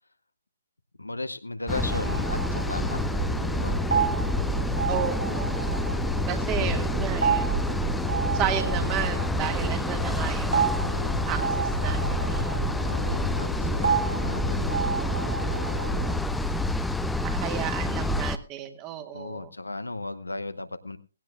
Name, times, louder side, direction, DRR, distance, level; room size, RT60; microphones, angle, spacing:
voice 1, 1.0-3.0 3.5-3.8 6.5-6.8 8.5-8.9 12.8-15.0 19.1-21.0, left 2 dB, 80° left, 11 dB, 1.0 m, -36 dB
sound 1, 1.7-18.4, left 1 dB, 5° left, 0.6 m, -28 dB
sound 2, 1.7-16.2, right 5 dB, 65° right, 1.8 m, -31 dB
voice 2, 4.9-5.5 6.3-7.5 8.3-10.5 11.2-12.0 12.3-12.6 17.4-19.5, right 10 dB, 20° right, 8 dB, 1.7 m, -32 dB
18.0 x 16.5 x 2.3 m, 0.33 s
figure-of-eight pair, 130°, 0 cm